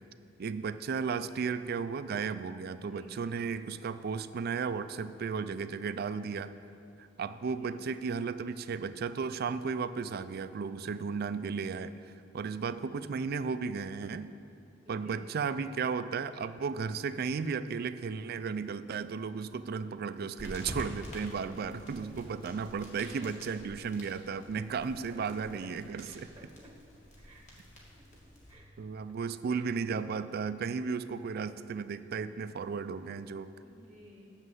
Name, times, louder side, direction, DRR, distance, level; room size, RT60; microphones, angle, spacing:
voice 1, 0.4-6.5 7.0-14.3 14.9-26.3 28.8-33.5, right 5 dB, 55° right, 13 dB, 0.4 m, -34 dB
voice 2, 2.8-3.2 7.6-7.8 10.7-11.0 14.8-15.3 21.5-21.7 22.0-22.1 23.2-23.3 25.1-25.7 26.0-26.5 27.2-27.4 27.9-28.0 28.5-28.8 29.5-29.7 33.6-34.3, right 1 dB, 15° right, 0 dB, 0.9 m, -55 dB
sound 1, 20.4-28.5, equal, 40° left, 2.2 m, -48 dB
7.6 x 7.1 x 7.8 m, 2.8 s
head